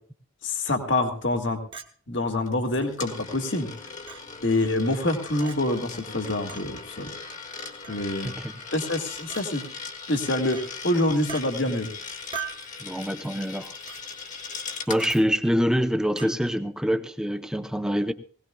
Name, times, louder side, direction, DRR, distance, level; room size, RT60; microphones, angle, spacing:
voice 1, 0.4-1.6 2.1-3.7 4.4-7.1 7.9-8.3 8.7-9.6 10.1-11.9, left 2 dB, 60° left, 5 dB, 1.9 m, -26 dB
Chink clink, 1.7-1.9 2.8-2.9 4.1-4.2 5.4-5.6 6.5-6.7 7.8-8.1 9.3-9.5 10.5-10.7 11.3-11.5 12.3-12.7 13.9-14.0 15.0-15.2 16.2-16.3, right 6 dB, 25° right, 1.2 m, -38 dB
Coin (dropping), 2.5-15.2, left 5 dB, 35° left, 1.7 m, -39 dB
voice 2, 8.2-8.6 12.8-13.8 14.9-18.1, equal, 5° right, 7 dB, 0.7 m, -25 dB
20.5 x 17.5 x 2.3 m, 0.42 s
head